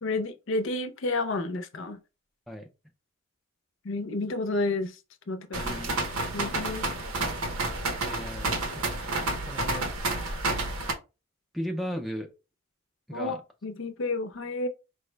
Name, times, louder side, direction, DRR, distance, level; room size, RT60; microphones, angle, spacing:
voice 1, 0.0-2.0 3.8-5.0 5.3-5.8 6.3-6.9 13.1-13.4 13.6-14.7, left 2 dB, 60° left, 0.5 m, -30 dB
sound 1, 5.5-10.9, right 2 dB, 80° right, 0.8 m, -30 dB
voice 2, 5.6-5.9 8.0-8.6 9.0-9.1 9.5-9.9 11.5-12.3 13.1-13.4, equal, ahead, 0.4 m, -36 dB
4.6 x 2.1 x 3.2 m
head